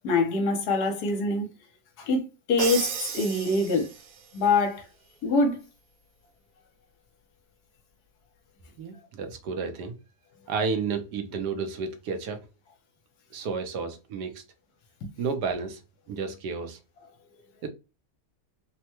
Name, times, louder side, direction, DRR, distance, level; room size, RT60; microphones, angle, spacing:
voice 1, 0.0-1.5 2.0-3.9 4.3-4.9 5.2-5.6 15.0-15.1, left 3 dB, 70° left, 1.2 m, -24 dB
Crash cymbal, 2.6-4.3, right 6 dB, 90° right, 1.4 m, -33 dB
voice 2, 8.8-9.9 10.5-12.4 13.3-14.4 15.2-15.8 16.1-16.8 17.6-17.7, right 5 dB, 70° right, 1.2 m, -31 dB
3.3 x 2.1 x 2.8 m
omnidirectional pair, 1.9 m